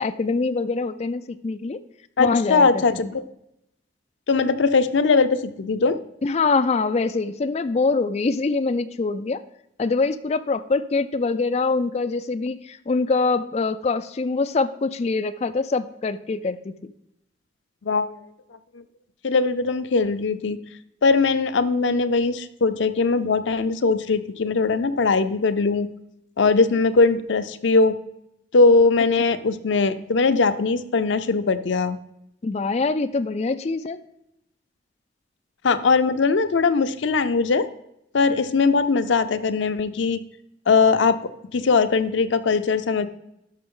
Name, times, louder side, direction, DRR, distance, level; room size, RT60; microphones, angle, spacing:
voice 1, 0.0-1.8 2.2-3.1 6.2-9.4 9.8-16.7 32.4-34.0, left 3 dB, 35° left, 12 dB, 0.4 m, -24 dB
voice 2, 2.2-3.2 4.3-6.0 17.8-18.1 18.7-18.8 19.2-20.6 21.0-25.9 26.4-28.0 28.5-32.0 35.6-37.7 38.1-40.2 40.7-41.2 41.5-43.1, left 4 dB, 85° left, 10 dB, 0.5 m, -20 dB
12.0 x 5.9 x 3.8 m, 0.81 s
head